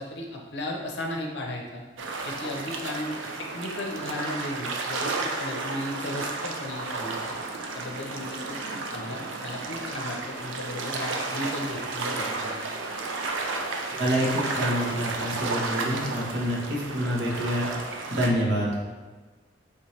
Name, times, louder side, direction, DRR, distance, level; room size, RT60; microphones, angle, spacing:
voice 1, 0.0-1.8 2.2-7.3 7.7-12.7, left 1 dB, 65° left, 0 dB, 0.7 m, -35 dB
sound 1, 2.0-18.3, right 3 dB, 85° right, 0.5 m, -32 dB
voice 2, 14.0-17.7 18.1-18.7, equal, 60° right, -5 dB, 1.1 m, -27 dB
4.2 x 3.5 x 3.2 m, 1.3 s
head